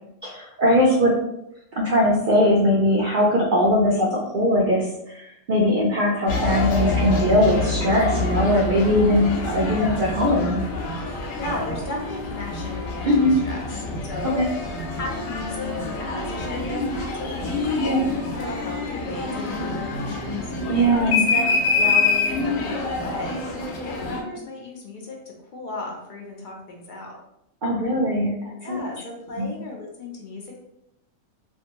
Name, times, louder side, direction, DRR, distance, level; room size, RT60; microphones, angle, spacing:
voice 1, 0.2-1.1 1.7-10.6 13.0-13.3 14.2-14.5 17.7-18.0 20.7-21.2 27.6-28.3 28.6-28.8 29.4-29.5, equal, 60° right, -3 dB, 0.5 m, -20 dB
sound 1, 6.3-24.2, left 3 dB, 80° left, 1.0 m, -26 dB
voice 2, 11.0-15.7 16.0-20.8 21.0-21.5 21.8-23.5 23.8-25.2 25.4-27.1 28.6-30.6, left 2 dB, 60° left, -1 dB, 0.5 m, -35 dB
2.6 x 2.5 x 2.8 m, 0.82 s
omnidirectional pair, 1.4 m